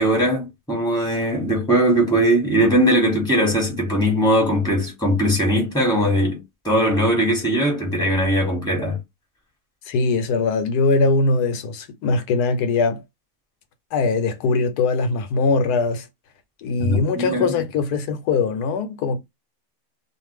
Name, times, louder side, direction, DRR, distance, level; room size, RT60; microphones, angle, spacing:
voice 1, 0.0-9.0 16.8-17.5, equal, 5° left, 1.3 m, -20 dB
voice 2, 9.8-13.0 13.9-16.1 16.6-19.2, left 4 dB, 90° left, 1.2 m, -21 dB
2.5 x 2.4 x 3.2 m
omnidirectional pair, 1.6 m